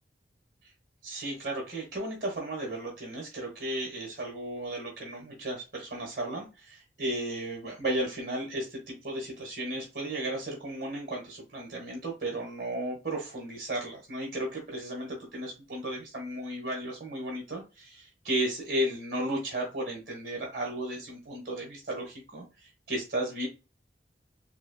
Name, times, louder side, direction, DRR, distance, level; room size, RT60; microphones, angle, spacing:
voice 1, 1.0-23.5, right 1 dB, 50° right, -1 dB, 1.3 m, -34 dB
4.3 x 2.7 x 2.2 m, 0.29 s
head